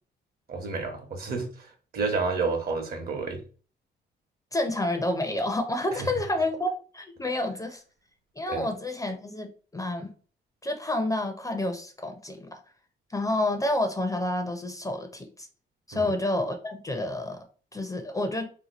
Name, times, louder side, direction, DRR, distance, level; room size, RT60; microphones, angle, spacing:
voice 1, 0.5-3.4 5.9-6.1 8.5-8.7 15.9-16.1, right 4 dB, 50° right, 4 dB, 1.0 m, -30 dB
voice 2, 4.5-7.8 8.4-10.1 10.6-12.5 13.1-15.5 15.9-17.4 17.7-18.5, left 1 dB, 15° left, 5 dB, 0.6 m, -29 dB
2.8 x 2.2 x 4.0 m, 0.39 s
cardioid pair, 90°, 20 cm